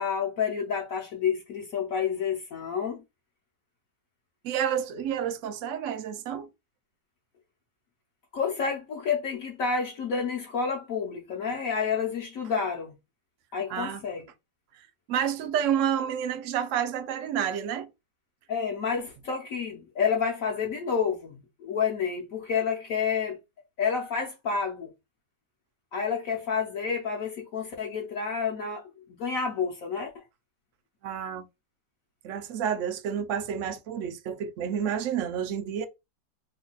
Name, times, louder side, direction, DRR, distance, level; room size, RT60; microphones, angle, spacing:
voice 1, 0.0-3.0 8.3-12.9 13.5-14.2 18.5-23.4 23.8-24.9 25.9-28.8 29.2-30.2, left 6 dB, 65° left, 0.9 m, -29 dB
voice 2, 4.4-6.5 13.7-14.0 15.1-17.9 31.0-31.5 32.2-35.9, right 8 dB, 70° right, 0.7 m, -29 dB
3.0 x 2.2 x 3.8 m
omnidirectional pair, 1.9 m